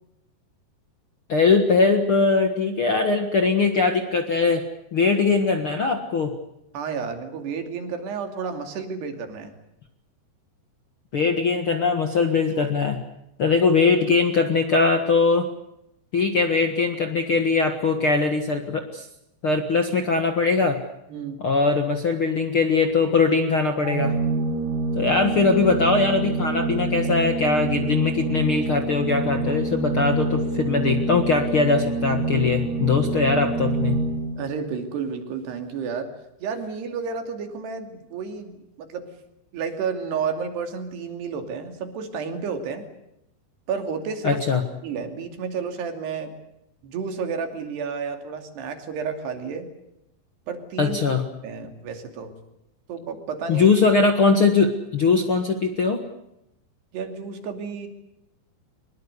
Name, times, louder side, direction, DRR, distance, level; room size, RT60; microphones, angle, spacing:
voice 1, 1.3-4.6 4.9-6.3 11.1-13.0 13.4-15.5 16.1-19.1 19.4-20.8 21.4-24.2 24.9-34.0 44.2-44.6 50.8-51.2 53.5-56.0, left 4 dB, 60° left, 6 dB, 1.3 m, -21 dB
voice 2, 6.7-9.5 21.1-21.5 34.4-36.1 36.4-39.1 39.5-42.8 43.7-44.4 44.8-46.3 46.8-49.7 50.5-51.0 51.4-52.4 52.9-53.7 56.9-57.9, right 5 dB, 70° right, 6 dB, 4.7 m, -31 dB
Organ, 23.8-34.6, right 3 dB, 85° right, 4.9 m, -26 dB
24.0 x 22.0 x 8.2 m, 0.83 s
omnidirectional pair, 5.1 m